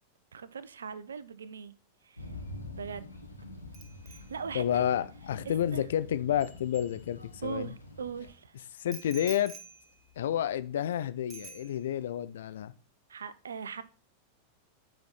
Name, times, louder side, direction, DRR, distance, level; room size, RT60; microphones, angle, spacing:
voice 1, 0.3-1.7 2.0-2.3 2.8-3.1 4.0-4.8 5.4-5.9 7.4-8.6 13.1-13.8, right 6 dB, 70° right, 0.7 m, -40 dB
sound 1, 2.2-8.3, left 1 dB, 85° left, 1.5 m, -46 dB
Bicycle bell, 3.7-7.6 8.9-10.9 11.3-12.2 12.4-12.7, right 4 dB, 20° right, 1.7 m, -51 dB
voice 2, 4.5-7.7 8.7-9.5 10.2-12.7, left 10 dB, 60° left, 0.6 m, -30 dB
8.8 x 5.2 x 4.1 m
figure-of-eight pair, 90°, 0 cm